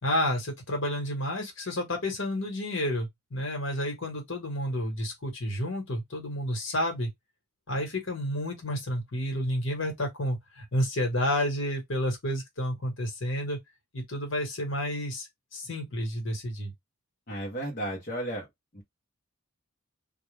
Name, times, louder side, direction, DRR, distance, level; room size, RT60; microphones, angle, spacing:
voice 1, 0.0-7.1 7.7-13.6 13.9-16.7, left 1 dB, 65° left, 1.3 m, -30 dB
voice 2, 17.3-18.5 18.7-18.8, right 1 dB, 40° left, 0.8 m, -33 dB
2.4 x 2.2 x 3.2 m
head